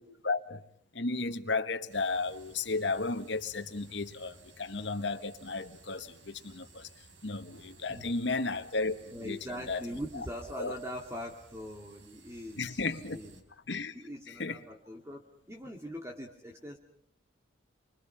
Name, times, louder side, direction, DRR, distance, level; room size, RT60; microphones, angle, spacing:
voice 1, 0.2-0.6 0.9-6.9 7.2-9.4 9.7-9.8 10.6-10.8 12.6-13.2 13.7-13.9 14.4-14.6, left 3 dB, 75° left, 1.5 m, -34 dB
sound 1, 1.9-13.4, right 3 dB, 90° right, 3.9 m, -57 dB
voice 2, 9.1-13.4 13.9-15.2 15.5-16.8, equal, 15° right, 2.2 m, -42 dB
29.5 x 24.5 x 5.7 m
head